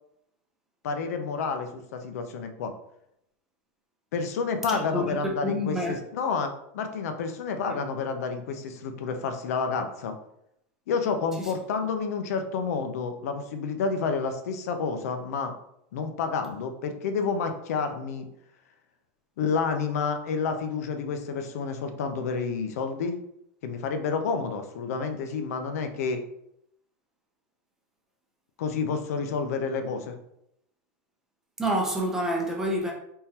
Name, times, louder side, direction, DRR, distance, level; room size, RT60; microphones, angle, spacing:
voice 1, 0.8-2.7 4.1-10.2 10.9-15.5 15.9-18.2 19.4-23.2 23.6-26.2 28.6-30.1, left 5 dB, 85° left, 0.7 m, -29 dB
voice 2, 4.7-5.2 5.4-6.0 7.7-7.8 11.4-11.5 31.6-32.9, equal, 5° right, 0.6 m, -28 dB
4.3 x 3.7 x 2.9 m
supercardioid pair, 175°, 8 cm